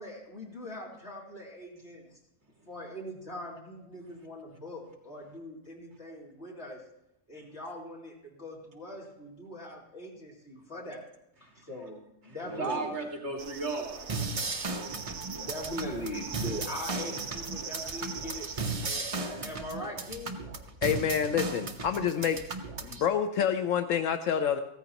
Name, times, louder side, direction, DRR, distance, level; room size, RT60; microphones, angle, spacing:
voice 1, 0.0-2.1 2.7-6.8 7.3-11.0 11.4-12.9 15.0-20.3, left 1 dB, 50° left, -3 dB, 3.1 m, -41 dB
voice 2, 12.3-14.4, right 3 dB, 50° right, 1 dB, 2.2 m, -35 dB
sound 1, 13.4-18.9, right 6 dB, 70° right, 1.2 m, -42 dB
sound 2, 14.1-23.1, right 3 dB, 30° right, 0.7 m, -36 dB
voice 3, 20.8-22.4 22.8-24.6, left 8 dB, 70° left, 9 dB, 1.0 m, -27 dB
15.5 x 14.0 x 2.9 m, 0.84 s
omnidirectional pair, 1.4 m